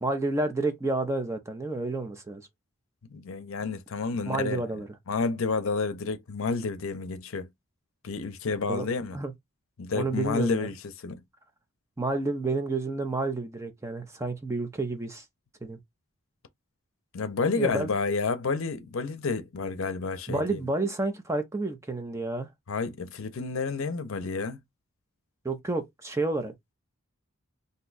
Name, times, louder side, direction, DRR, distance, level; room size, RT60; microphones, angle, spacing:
voice 1, 0.0-2.5 4.3-4.9 8.7-8.9 9.1-9.3 9.9-10.7 12.0-15.2 15.6-15.8 17.6-17.9 20.3-22.5 25.4-26.5, right 2 dB, 15° right, 0.5 m, -30 dB
voice 2, 3.1-4.6 5.1-7.5 8.0-9.2 9.8-10.8 11.0-11.2 17.1-20.6 22.7-24.6, left 4 dB, 70° left, 0.6 m, -30 dB
2.6 x 2.2 x 3.9 m
head